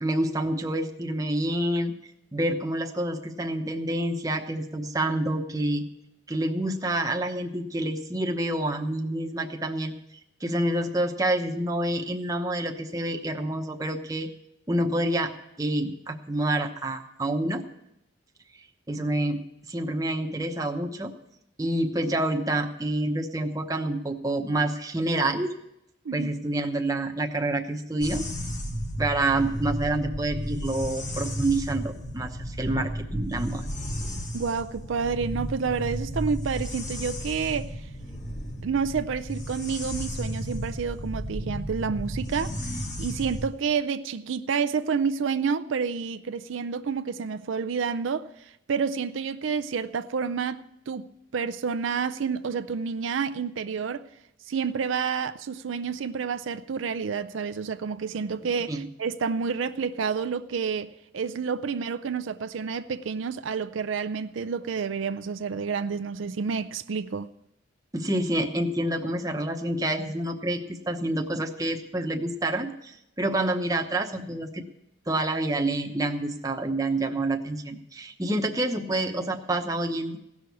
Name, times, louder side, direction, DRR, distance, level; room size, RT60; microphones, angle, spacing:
voice 1, 0.0-5.8 6.3-9.9 10.4-14.3 14.7-15.3 15.6-17.6 18.9-21.1 21.6-25.5 26.1-28.3 29.0-33.6 58.7-58.9 67.9-74.6 75.1-80.2, right 1 dB, 20° right, 0.9 m, -28 dB
sound 1, 28.0-43.5, equal, 40° left, 1.4 m, -33 dB
voice 2, 34.3-37.7 38.6-48.3 48.7-54.0 54.5-67.3, right 6 dB, 75° right, 0.4 m, -29 dB
16.5 x 6.2 x 8.3 m
head